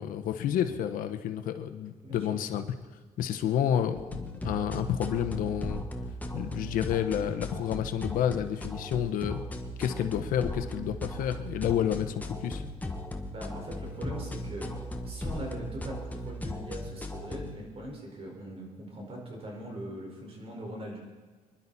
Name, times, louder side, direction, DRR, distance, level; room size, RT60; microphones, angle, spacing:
voice 1, 0.0-2.6 3.2-5.9 6.3-9.4 9.8-12.6, left 9 dB, 85° left, 8 dB, 1.1 m, -30 dB
sound 1, 4.0-17.6, left 1 dB, 10° left, 1.3 m, -37 dB
voice 2, 13.3-14.7 15.0-21.0, right 1 dB, 45° right, 0 dB, 4.8 m, -41 dB
25.5 x 11.5 x 4.2 m, 1.4 s
cardioid pair, 120°, 14 cm